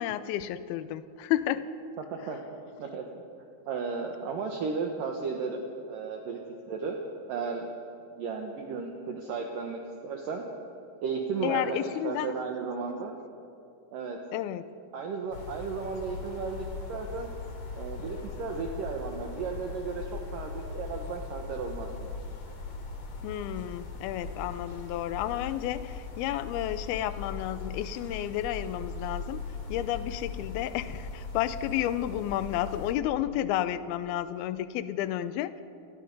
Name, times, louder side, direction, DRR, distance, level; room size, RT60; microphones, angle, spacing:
voice 1, 0.0-1.7 11.4-12.3 14.3-14.6 23.2-29.4 29.7-35.6, left 12 dB, 80° left, 13 dB, 2.4 m, -31 dB
voice 2, 3.7-6.4 6.7-7.0 7.3-7.7 8.2-10.4 11.0-11.8 12.0-13.2 13.9-14.2 14.9-17.3 17.7-22.1, right 5 dB, 65° right, 2 dB, 2.6 m, -34 dB
sound 1, 15.3-32.9, left 4 dB, 45° left, 3.3 m, -40 dB
29.5 x 21.0 x 5.4 m, 2.5 s
omnidirectional pair, 5.0 m